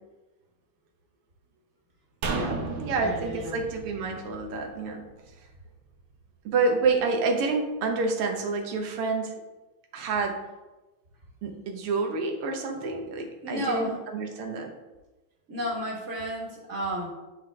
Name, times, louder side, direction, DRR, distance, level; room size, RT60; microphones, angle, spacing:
sound 1, 2.2-5.6 5.9-6.0, right 4 dB, 70° right, 1.6 m, -34 dB
voice 1, 2.3-2.6 2.9-3.6 13.4-14.0 15.5-17.1, equal, 35° right, -3 dB, 1.6 m, -32 dB
voice 2, 2.8-5.1 6.5-9.4 9.9-10.4 11.4-14.7, right 3 dB, 90° right, 2 dB, 1.9 m, -28 dB
9.8 x 3.7 x 3.3 m, 1.1 s
omnidirectional pair, 2.4 m